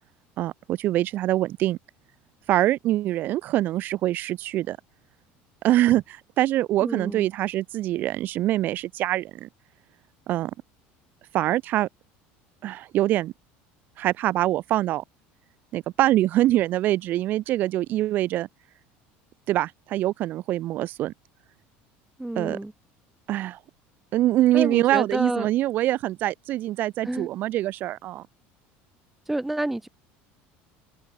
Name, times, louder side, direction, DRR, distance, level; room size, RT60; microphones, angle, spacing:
voice 1, 0.4-1.8 2.5-4.8 5.6-9.5 10.3-10.5 11.3-11.9 12.6-13.3 14.0-15.0 15.7-18.5 19.5-21.1 22.4-22.6 23.3-23.6 24.1-28.2, right 14 dB, 40° right, 7.5 m, -24 dB
voice 2, 6.8-7.3 22.2-22.7 24.5-25.5 27.0-27.3 29.3-29.9, right 1 dB, 5° right, 4.5 m, -29 dB
open air
cardioid pair, 175°, 5 cm